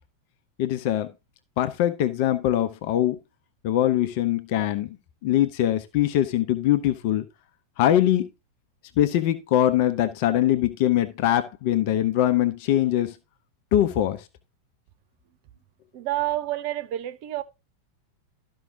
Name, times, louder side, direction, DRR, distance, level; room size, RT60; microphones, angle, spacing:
voice 1, 0.6-1.1 1.6-3.2 3.6-4.9 5.2-7.2 7.8-8.3 9.0-13.2 13.7-14.3, left 12 dB, 45° left, 0.9 m, -22 dB
voice 2, 15.9-17.4, right 14 dB, 45° right, 0.9 m, -28 dB
13.0 x 5.6 x 3.7 m
figure-of-eight pair, 90°, 0 cm